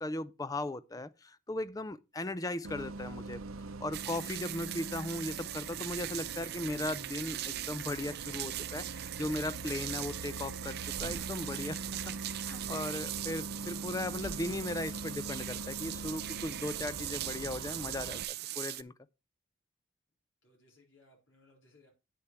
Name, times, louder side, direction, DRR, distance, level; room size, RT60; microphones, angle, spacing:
voice 1, 0.0-3.4 3.8-18.2 18.6-18.9, left 1 dB, 15° left, 0.4 m, -37 dB
Bus, 2.6-18.2, right 2 dB, 85° right, 0.7 m, -43 dB
sound 1, 3.9-18.8, right 15 dB, 50° right, 0.5 m, -40 dB
voice 2, 20.4-21.9, left 2 dB, 65° left, 4.1 m, -65 dB
9.3 x 6.7 x 4.6 m
head